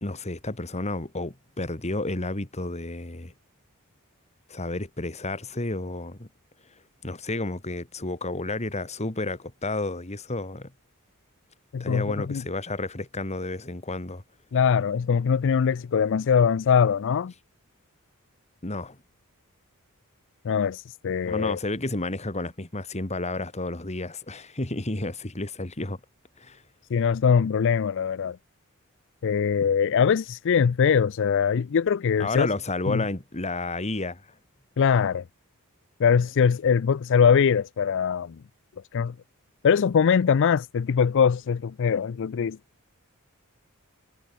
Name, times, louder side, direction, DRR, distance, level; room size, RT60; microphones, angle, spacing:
voice 1, 0.0-3.3 4.5-6.3 7.0-10.7 11.8-14.2 18.6-19.0 21.3-26.0 26.4-26.6 32.2-34.3, left 2 dB, 30° left, 2.1 m, -31 dB
voice 2, 11.7-12.4 14.5-17.3 20.4-21.6 26.9-28.4 29.2-32.5 32.9-33.0 34.8-35.2 36.0-38.4 38.9-39.1 39.6-42.6, left 6 dB, 60° left, 0.4 m, -22 dB
head